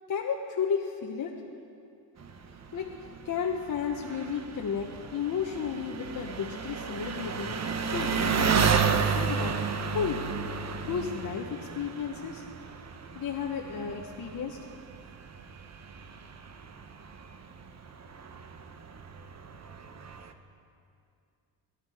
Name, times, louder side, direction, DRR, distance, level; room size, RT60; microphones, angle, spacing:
voice 1, 0.1-1.3 2.7-2.9 3.2-7.5 7.9-9.6 9.9-10.3 10.8-12.4 13.1-14.6, left 7 dB, 45° left, 0 dB, 1.1 m, -33 dB
Engine, 2.2-20.3, right 6 dB, 35° right, 1.0 m, -33 dB
18.0 x 11.5 x 4.9 m, 2.5 s
cardioid pair, 100°, 43 cm